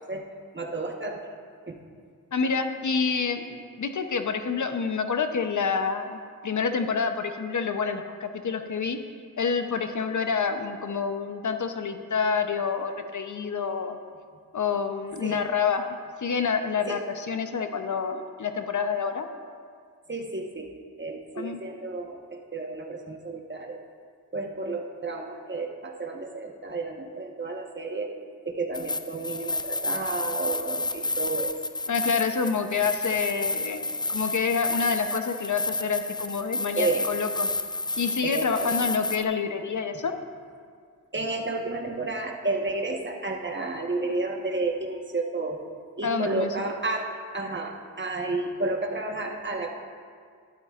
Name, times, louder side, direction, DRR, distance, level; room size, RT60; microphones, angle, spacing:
voice 1, 0.5-1.3 1.7-1.8 15.2-15.4 16.9-17.0 20.1-20.7 21.0-23.8 24.3-28.1 28.4-31.5 36.7-37.1 38.2-38.7 41.1-45.6 46.0-49.7, right 3 dB, 35° right, 2 dB, 1.3 m, -31 dB
voice 2, 2.3-9.0 9.4-14.0 14.5-15.8 16.2-19.3 21.4-21.6 31.9-37.5 38.0-40.1 46.0-46.5, left 5 dB, 60° left, 7 dB, 0.8 m, -28 dB
sound 1, 28.7-39.2, left 2 dB, 15° left, 0.5 m, -30 dB
12.5 x 12.0 x 2.5 m, 2.1 s
cardioid pair, 50°, 34 cm